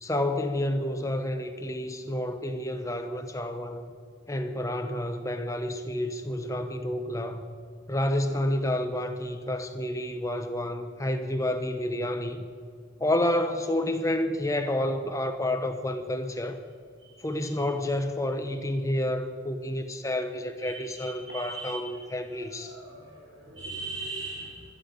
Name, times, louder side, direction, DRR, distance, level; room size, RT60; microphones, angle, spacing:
voice 1, 0.0-3.8 4.3-7.4 7.9-12.4 13.0-16.6 17.2-22.7, left 1 dB, 15° left, 7 dB, 1.1 m, -29 dB
voice 2, 21.0-21.8 22.4-24.6, right 3 dB, 65° right, -4 dB, 2.9 m, -39 dB
25.0 x 10.5 x 5.2 m, 2.2 s
head